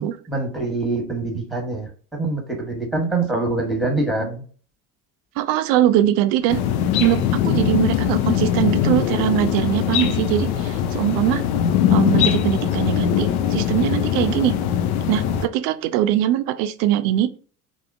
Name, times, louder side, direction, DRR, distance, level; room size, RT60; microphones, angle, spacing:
voice 1, 0.0-4.4, right 2 dB, ahead, 2 dB, 1.1 m, -25 dB
voice 2, 5.4-6.6 7.0-11.4 11.9-14.5 15.1-17.5, right 12 dB, 55° right, 11 dB, 0.5 m, -21 dB
sound 1, 6.5-15.5, left 9 dB, 70° left, 0.5 m, -21 dB
3.5 x 2.0 x 2.4 m, 0.42 s
hypercardioid pair, 70°, 45 cm